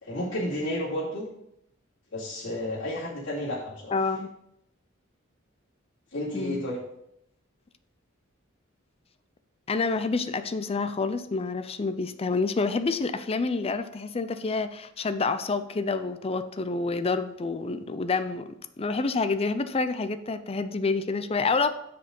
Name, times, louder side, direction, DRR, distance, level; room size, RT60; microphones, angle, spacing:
voice 1, 0.0-1.2 2.1-3.9 6.1-6.8, left 1 dB, 65° left, -9 dB, 2.5 m, -31 dB
voice 2, 3.9-4.3 6.3-6.6 9.7-18.4 18.8-21.7, left 4 dB, 30° left, 11 dB, 0.5 m, -28 dB
7.0 x 5.2 x 5.2 m, 0.79 s
head